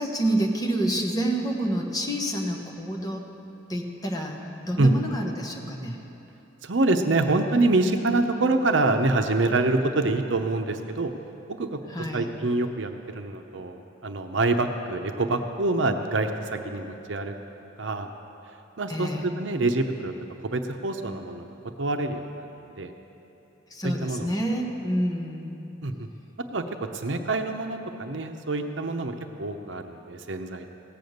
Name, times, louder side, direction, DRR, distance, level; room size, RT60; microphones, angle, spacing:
voice 1, 0.0-3.3 3.7-6.0 11.9-12.3 18.9-19.3 23.7-25.5, right 1 dB, 20° left, 1 dB, 1.2 m, -28 dB
voice 2, 6.6-11.1 11.5-11.8 12.1-17.3 17.8-18.1 18.8-20.1 20.5-21.5 21.8-22.5 22.8-22.9 23.8-24.3 25.8-26.1 26.5-30.6, right 2 dB, 65° right, 6 dB, 0.8 m, -26 dB
17.0 x 7.0 x 7.9 m, 3.0 s
head